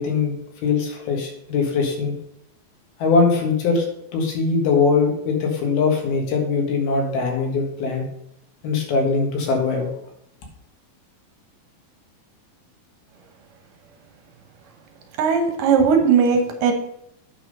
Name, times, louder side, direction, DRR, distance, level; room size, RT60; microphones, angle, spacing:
voice 1, 0.0-2.2 3.0-3.9 4.1-8.1 8.6-9.9, left 4 dB, 90° left, 2 dB, 3.5 m, -21 dB
voice 2, 15.2-16.7, right 6 dB, 70° right, 4 dB, 2.4 m, -18 dB
9.0 x 5.5 x 5.3 m, 0.77 s
omnidirectional pair, 4.2 m